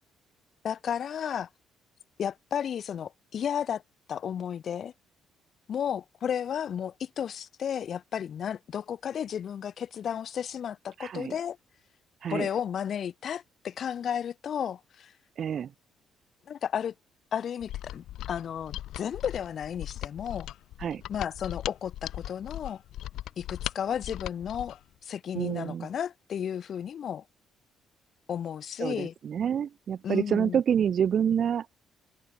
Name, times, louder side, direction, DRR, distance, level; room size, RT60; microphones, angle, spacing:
voice 1, 0.6-1.5 2.2-3.8 4.1-4.9 5.7-11.6 12.3-15.1 16.5-16.9 17.3-20.5 21.1-22.8 23.4-27.2 28.3-29.1 30.0-30.6, left 8 dB, 50° left, 1.2 m, -33 dB
voice 2, 11.0-11.3 12.2-12.5 15.4-15.7 20.8-21.0 25.3-25.9 28.8-31.7, right 8 dB, 50° right, 1.1 m, -27 dB
Mechanisms, 17.6-24.8, left 13 dB, 80° left, 1.6 m, -39 dB
cardioid pair, 120°, 0 cm